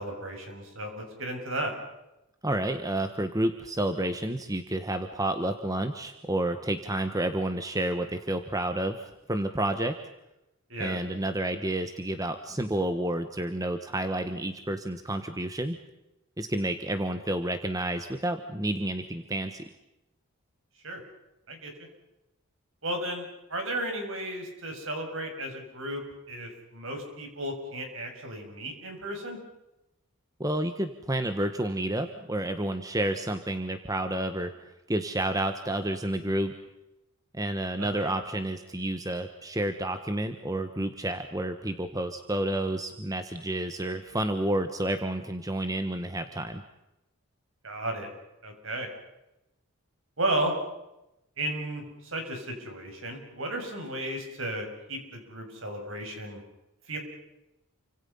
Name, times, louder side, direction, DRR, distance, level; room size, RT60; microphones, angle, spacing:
voice 1, 0.0-1.7 10.7-11.0 20.8-21.0 21.5-21.7 22.8-26.0 26.3-29.4 37.8-38.1 47.6-48.1 48.4-48.9 50.2-50.5 51.4-56.4 56.9-57.0, right 1 dB, 60° right, 4 dB, 7.0 m, -34 dB
voice 2, 2.4-9.9 10.8-15.8 16.4-19.6 30.4-34.5 34.9-36.5 37.3-46.6, right 1 dB, 15° right, 8 dB, 1.2 m, -30 dB
29.0 x 25.5 x 5.6 m, 0.92 s
head